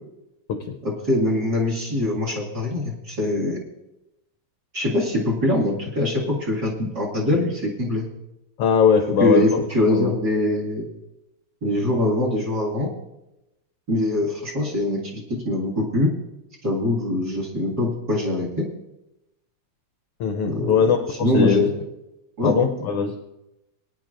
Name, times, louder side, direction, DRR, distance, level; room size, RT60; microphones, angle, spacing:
voice 1, 0.8-3.6 4.7-8.1 9.2-10.9 11.6-12.9 13.9-16.1 16.6-18.7 20.5-21.8 22.4-22.6, left 1 dB, 35° right, -2 dB, 2.3 m, -23 dB
voice 2, 8.6-9.6 9.9-10.1 20.2-21.7 22.4-23.2, left 6 dB, 75° left, 6 dB, 1.4 m, -21 dB
21.5 x 10.0 x 2.5 m, 0.92 s
omnidirectional pair, 3.3 m